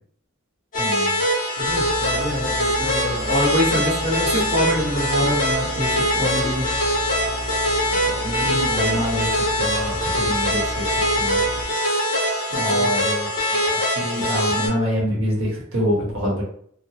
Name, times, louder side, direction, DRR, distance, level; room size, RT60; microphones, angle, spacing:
sound 1, 0.7-14.7, equal, 40° left, 1.0 m, -23 dB
voice 1, 0.8-1.2 8.0-10.8 11.1-11.4 12.5-16.4, equal, 70° right, -3 dB, 1.1 m, -26 dB
voice 2, 1.6-6.7 8.4-8.7 12.5-12.9, equal, 45° right, -4 dB, 0.8 m, -25 dB
sound 2, 1.6-11.6, equal, 85° right, 0.9 m, -33 dB
3.1 x 2.1 x 2.8 m, 0.63 s
head